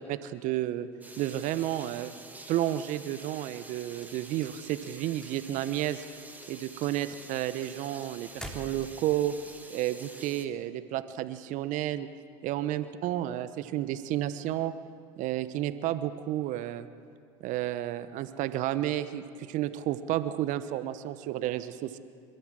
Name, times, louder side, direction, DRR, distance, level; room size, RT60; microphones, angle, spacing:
voice 1, 0.1-0.9 1.2-2.2 2.5-6.0 6.5-9.3 9.7-12.1 12.4-14.7 15.2-16.9 17.4-22.0, right 13 dB, 60° right, 12 dB, 1.1 m, -31 dB
sound 1, 1.0-10.5, right 2 dB, 10° right, 2.4 m, -48 dB
sound 2, 4.0-5.3 5.6-6.1 6.4-9.2, equal, 5° left, 3.1 m, -45 dB
27.5 x 13.5 x 7.6 m, 2.3 s
hypercardioid pair, 70°, 15 cm